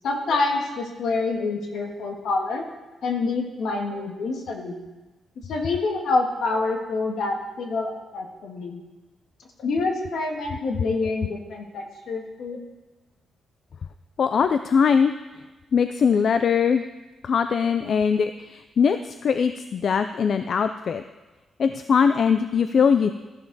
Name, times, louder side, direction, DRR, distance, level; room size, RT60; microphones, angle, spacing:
voice 1, 0.0-2.7 3.0-4.8 5.5-8.8 9.6-12.6, left 3 dB, 65° left, 2 dB, 1.6 m, -27 dB
voice 2, 14.2-15.1 15.7-16.8 17.2-21.0 21.6-23.1, left 6 dB, 45° left, 9 dB, 0.4 m, -21 dB
12.5 x 11.0 x 4.0 m, 1.1 s
wide cardioid pair, 170°, 0 cm